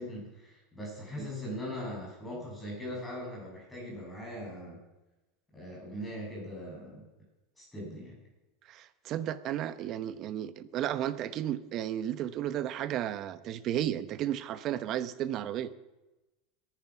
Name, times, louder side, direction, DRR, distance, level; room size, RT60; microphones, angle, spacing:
voice 1, 0.0-4.8 5.5-7.0 7.6-8.2, equal, 10° left, -3 dB, 6.8 m, -40 dB
voice 2, 8.7-15.7, right 11 dB, 40° right, 13 dB, 0.9 m, -33 dB
21.5 x 10.5 x 6.0 m, 1.0 s
supercardioid pair, 160°, 0 cm